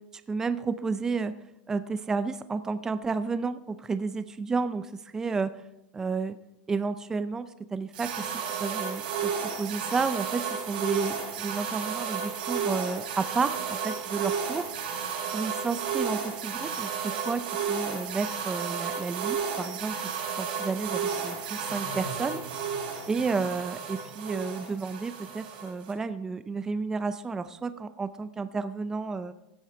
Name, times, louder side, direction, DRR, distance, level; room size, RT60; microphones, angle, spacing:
voice 1, 0.1-1.4 1.7-5.6 5.9-6.4 6.7-9.3 9.6-14.7 15.3-20.0 20.4-22.4 23.1-29.3, right 4 dB, 10° right, 12 dB, 0.5 m, -31 dB
sound 1, 7.9-25.9, right 6 dB, 85° right, 5.0 m, -33 dB
sound 2, 20.8-26.1, left 1 dB, 80° left, 1.9 m, -48 dB
16.0 x 8.7 x 4.5 m, 0.87 s
supercardioid pair, 155°, 5 cm